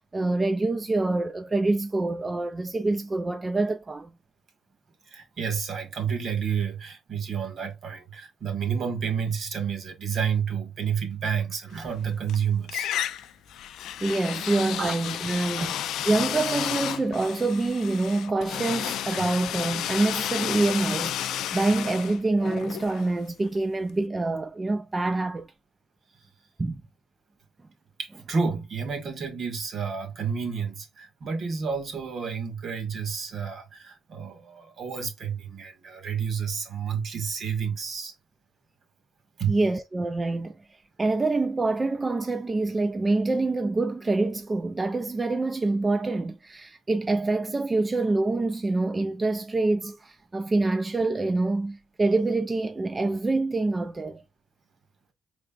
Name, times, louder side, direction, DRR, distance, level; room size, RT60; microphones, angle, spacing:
voice 1, 0.0-4.1 14.0-15.7 16.1-25.5 26.6-26.8 39.5-40.6 41.0-54.2, right 2 dB, 25° right, 0.4 m, -26 dB
voice 2, 5.0-13.2 14.8-14.9 15.6-15.8 19.1-19.4 28.0-38.1 39.4-39.6, right 6 dB, 60° right, 1.7 m, -30 dB
sound 1, 11.8-12.4 12.7-23.6, left 11 dB, 80° left, 0.4 m, -32 dB
4.9 x 3.4 x 2.3 m
cardioid pair, 90°, 0 cm